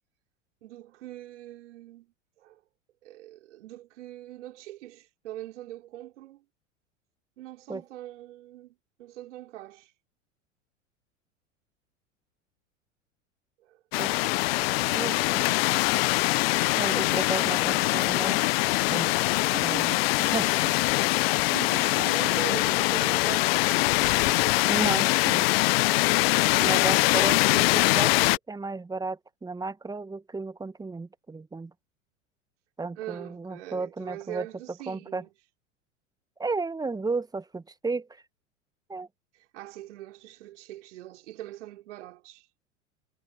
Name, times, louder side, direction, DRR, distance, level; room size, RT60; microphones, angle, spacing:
voice 1, 0.6-2.6 3.0-6.4 7.4-9.9 13.6-13.8 15.9-16.1 19.5-20.3 21.5-24.6 33.0-35.3 39.3-42.5, right 15 dB, 65° right, 4.5 m, -42 dB
sound 1, 13.9-28.4, left 22 dB, 50° left, 0.6 m, -23 dB
sound 2, 14.4-25.7, left 8 dB, 25° left, 2.4 m, -48 dB
voice 2, 14.9-15.5 16.8-18.4 18.9-19.1 19.6-20.7 24.7-25.5 26.6-28.2 28.5-31.7 32.8-34.5 34.9-35.2 36.4-38.2 38.9-39.1, right 3 dB, 10° right, 1.3 m, -33 dB
figure-of-eight pair, 90°, 38 cm